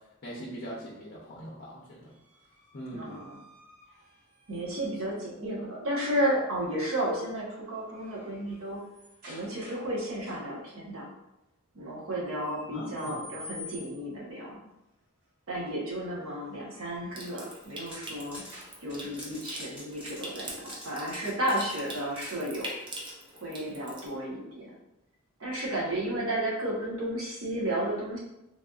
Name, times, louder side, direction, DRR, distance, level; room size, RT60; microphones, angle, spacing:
voice 1, 0.2-2.1 2.7-3.2 12.6-13.3, equal, 45° left, -5 dB, 0.6 m, -41 dB
sound 1, 2.1-5.0 6.7-7.1 7.5-9.9 10.2-10.7 12.3-14.2 16.5-19.3, left 2 dB, 50° right, 1.5 m, -51 dB
voice 2, 2.9-3.4 4.5-8.8 9.3-11.0 11.7-14.6 15.5-18.4 18.8-22.7 23.3-24.7 25.4-28.2, right 1 dB, 70° right, -4 dB, 0.9 m, -33 dB
Water tap faucet / Sink (filling or washing) / Trickle dribble, 17.1-24.1, right 1 dB, 25° right, 0.5 m, -44 dB
sound 2, 17.6-18.5 18.9-22.4, equal, 5° right, 1.0 m, -46 dB
3.2 x 2.6 x 2.3 m, 0.92 s
head